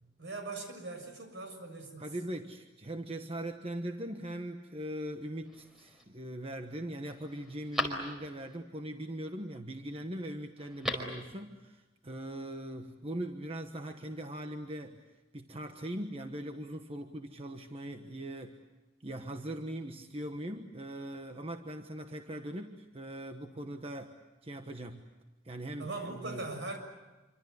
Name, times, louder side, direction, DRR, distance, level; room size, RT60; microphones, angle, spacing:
voice 1, 0.2-2.1 25.8-26.8, right 3 dB, 70° right, 5 dB, 6.9 m, -40 dB
voice 2, 2.0-15.0 15.3-18.6 19.0-24.1 24.4-25.1 25.4-26.4, right 1 dB, 30° right, 5 dB, 1.2 m, -40 dB
Telephone, 5.4-6.0 6.6-6.7 7.0-8.6 10.6-11.2 11.5-11.6, left 1 dB, ahead, 4.8 m, -38 dB
27.0 x 25.5 x 8.2 m, 1.1 s
head